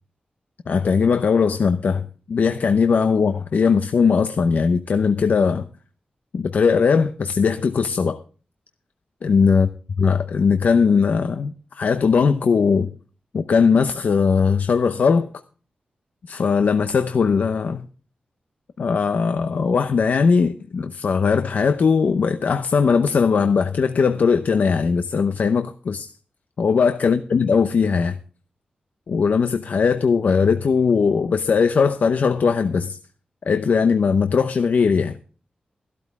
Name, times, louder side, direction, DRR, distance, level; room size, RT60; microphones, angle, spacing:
voice 1, 0.7-5.7 6.3-8.2 9.2-9.7 10.0-12.9 13.3-15.3 16.3-17.8 18.8-26.1 26.6-28.2 29.1-33.0 33.5-35.2, left 5 dB, 65° left, 0.8 m, -19 dB
15.0 x 12.5 x 3.6 m
wide cardioid pair, 150°, 3 cm